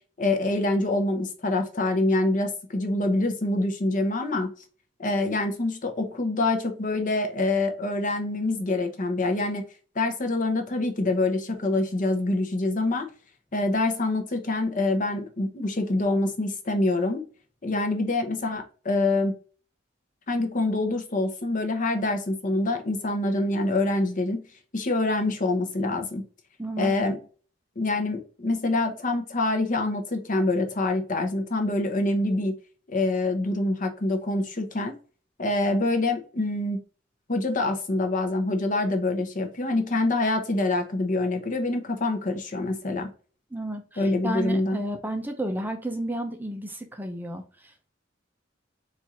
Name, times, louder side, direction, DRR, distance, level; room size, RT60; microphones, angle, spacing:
voice 1, 0.2-4.5 5.0-9.6 9.9-13.1 13.5-17.2 17.6-19.3 20.3-24.4 24.7-26.2 26.8-27.2 27.8-32.5 32.9-34.9 35.4-36.8 37.3-43.1 44.0-44.8, left 2 dB, 45° left, 5 dB, 0.8 m, -25 dB
voice 2, 26.6-26.9 43.5-47.9, right 1 dB, 10° right, 4 dB, 0.6 m, -32 dB
4.4 x 2.5 x 4.2 m, 0.39 s
head